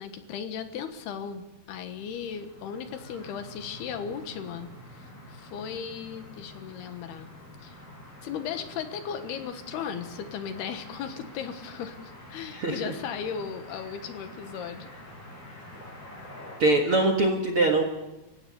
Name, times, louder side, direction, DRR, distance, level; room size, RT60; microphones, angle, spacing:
voice 1, 0.0-7.3 7.6-7.8 8.2-14.9, left 7 dB, 75° left, 8 dB, 3.4 m, -36 dB
sound 1, 1.9-16.6, left 1 dB, 25° left, 7.9 m, -47 dB
voice 2, 12.5-12.9 16.6-17.8, right 2 dB, 50° right, 2 dB, 1.8 m, -23 dB
29.0 x 16.0 x 7.0 m, 1.0 s
omnidirectional pair, 4.7 m